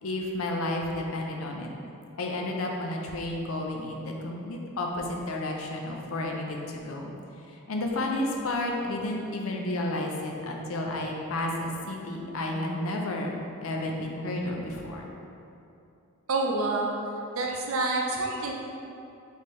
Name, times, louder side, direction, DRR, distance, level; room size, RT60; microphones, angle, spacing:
voice 1, 0.0-1.7 2.2-7.1 7.7-13.3 13.6-15.0, left 1 dB, 70° left, 1 dB, 0.5 m, -31 dB
voice 2, 16.3-17.0 17.3-18.5, right 2 dB, 65° right, -1 dB, 0.6 m, -27 dB
4.3 x 3.4 x 3.1 m, 2.6 s
head